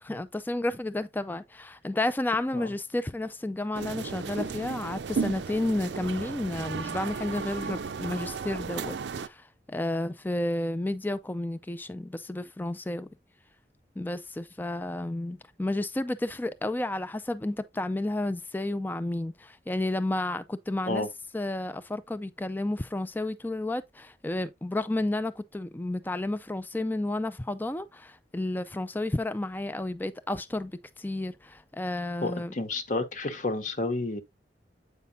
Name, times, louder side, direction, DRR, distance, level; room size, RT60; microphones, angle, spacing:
voice 1, 0.0-13.1 14.0-21.0 21.3-32.5, left 1 dB, 10° left, 0.4 m, -31 dB
sound 1, 3.7-9.3, right 5 dB, 85° right, 0.5 m, -34 dB
voice 2, 32.2-34.2, left 2 dB, 45° left, 1.1 m, -30 dB
8.3 x 5.5 x 2.6 m
head